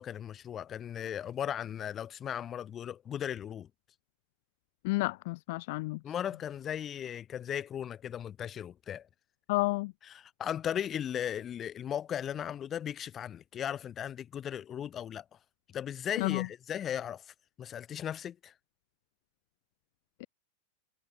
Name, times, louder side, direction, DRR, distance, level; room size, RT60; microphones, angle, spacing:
voice 1, 0.0-3.7 6.0-9.1 10.0-15.2 15.7-18.5, left 9 dB, 25° left, 7.7 m, -37 dB
voice 2, 4.8-6.0 9.5-9.9 16.2-16.5 20.2-20.3, left 23 dB, 50° left, 1.3 m, -30 dB
figure-of-eight pair, 90°, 0 cm